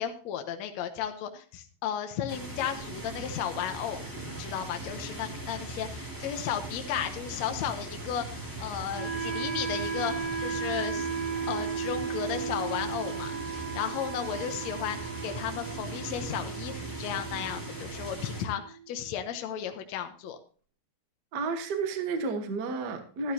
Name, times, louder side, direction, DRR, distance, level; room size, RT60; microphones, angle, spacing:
voice 1, 0.0-4.0 4.4-11.1 11.5-20.4, left 9 dB, 70° left, 1.7 m, -34 dB
sound 1, 2.3-18.4, right 2 dB, 10° right, 1.0 m, -40 dB
Wind instrument woodwind instrument, 8.9-18.9, right 6 dB, 45° right, 1.2 m, -36 dB
voice 2, 21.3-23.3, right 4 dB, 80° right, 0.9 m, -31 dB
13.0 x 11.0 x 2.8 m
omnidirectional pair, 4.2 m